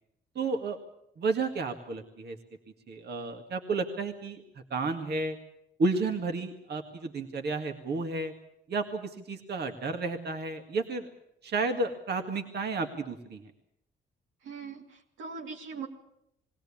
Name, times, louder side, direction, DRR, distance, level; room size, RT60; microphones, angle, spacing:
voice 1, 0.4-0.8 1.2-2.4 2.9-4.4 4.7-5.4 5.8-8.3 8.7-11.1 11.4-13.5, right 3 dB, 55° right, 5 dB, 2.0 m, -32 dB
voice 2, 14.4-15.9, right 5 dB, 85° right, 1 dB, 2.8 m, -41 dB
21.5 x 17.0 x 8.6 m, 0.79 s
cardioid pair, 90°, 20 cm